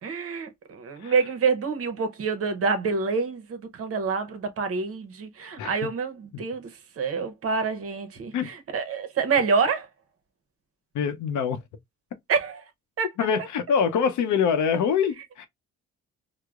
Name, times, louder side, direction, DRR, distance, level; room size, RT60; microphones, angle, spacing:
voice 1, 0.0-6.7 7.0-9.9 12.3-12.6 13.0-13.1, right 5 dB, 50° right, 0.7 m, -27 dB
voice 2, 10.9-11.6 13.2-15.4, left 7 dB, 70° left, 0.7 m, -24 dB
4.6 x 2.0 x 2.3 m
cardioid pair, 90°, 30 cm